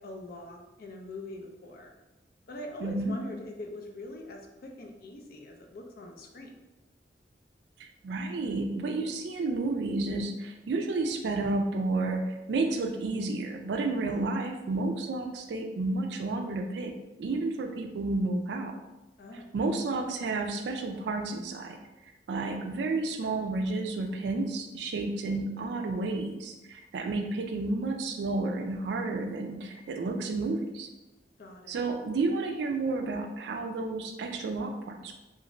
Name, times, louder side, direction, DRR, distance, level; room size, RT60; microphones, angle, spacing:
voice 1, 0.0-1.9 2.5-6.6 19.2-19.5 31.4-31.8, left 1 dB, 55° left, 2 dB, 0.4 m, -43 dB
voice 2, 2.8-3.1 8.0-16.9 17.2-18.7 19.5-21.8 22.3-30.9 31.7-35.1, right 3 dB, 70° right, 4 dB, 0.3 m, -31 dB
2.5 x 2.4 x 3.0 m, 1.0 s
head